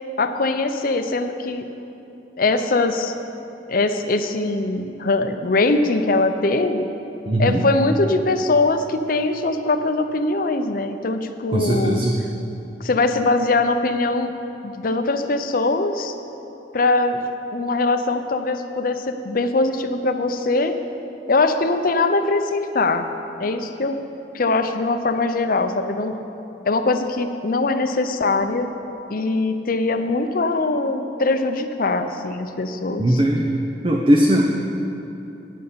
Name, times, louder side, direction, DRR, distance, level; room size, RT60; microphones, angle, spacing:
voice 1, 0.2-1.7 2.4-3.1 3.7-6.9 7.4-12.0 12.8-14.3 14.6-16.1 16.7-17.2 17.5-20.8 21.3-23.1 23.4-24.0 24.3-26.1 26.7-28.7 29.1-33.2, left 3 dB, 50° left, 8 dB, 0.6 m, -21 dB
voice 2, 7.3-7.6 11.5-12.1 33.0-33.4 33.8-34.4, right 1 dB, 30° right, -1 dB, 0.7 m, -18 dB
9.7 x 7.9 x 6.8 m, 2.9 s
head